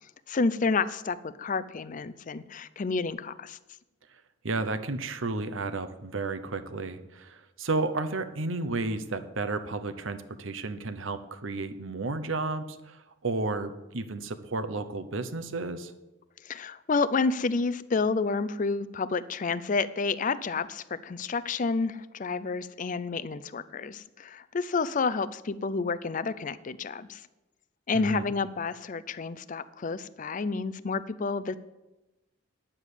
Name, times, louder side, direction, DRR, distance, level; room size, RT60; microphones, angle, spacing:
voice 1, 0.3-3.6 16.4-27.2 27.9-31.6, left 4 dB, 40° left, 15 dB, 0.5 m, -30 dB
voice 2, 4.4-15.9 27.9-28.3, right 3 dB, 70° right, 10 dB, 0.9 m, -32 dB
9.9 x 7.1 x 8.2 m, 1.0 s
head